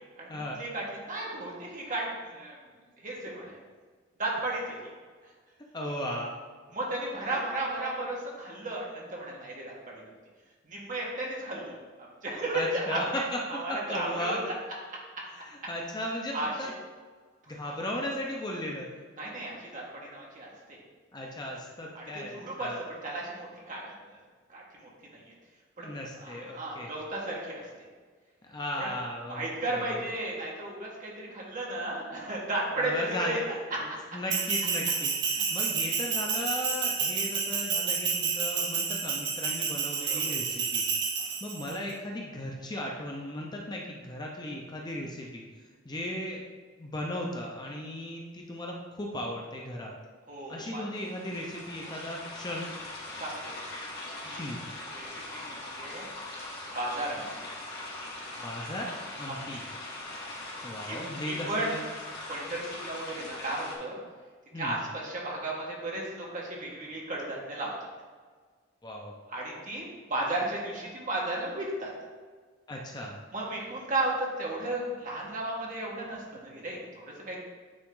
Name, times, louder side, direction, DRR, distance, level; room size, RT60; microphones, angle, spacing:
voice 1, 0.2-2.6 3.0-3.6 4.2-4.8 6.7-10.0 10.6-14.5 16.3-16.7 17.6-17.7 19.2-20.8 21.9-23.9 24.5-25.3 25.8-25.9 26.2-27.6 28.8-28.9 29.3-33.4 33.7-33.8 40.0-40.3 41.2-41.3 50.3-50.8 51.8-51.9 53.2-53.5 54.3-54.5 54.9-55.1 55.3-56.1 56.7-57.3 59.3-59.6 60.1-60.2 60.9-61.0 61.3-61.7 62.3-64.0 64.5-67.7 69.3-71.9 73.3-77.4, right 2 dB, 40° right, -3 dB, 1.5 m, -34 dB
voice 2, 5.7-6.3 7.3-7.4 12.5-13.4 13.9-14.4 15.4-16.7 17.5-18.9 21.1-22.8 25.8-26.9 28.5-30.0 32.8-33.4 33.8-40.9 41.4-45.4 45.8-46.4 46.8-50.0 50.5-52.7 54.4-54.6 58.4-58.9 59.2-59.6 60.6-61.9 64.5-64.8 68.8-69.1 72.7-73.2, left 1 dB, 20° left, -1 dB, 0.7 m, -36 dB
Bell, 34.3-41.7, right 6 dB, 60° right, 0.9 m, -30 dB
sound 1, 50.9-63.8, left 2 dB, 55° left, 1.8 m, -41 dB
8.8 x 3.7 x 3.8 m, 1.5 s
head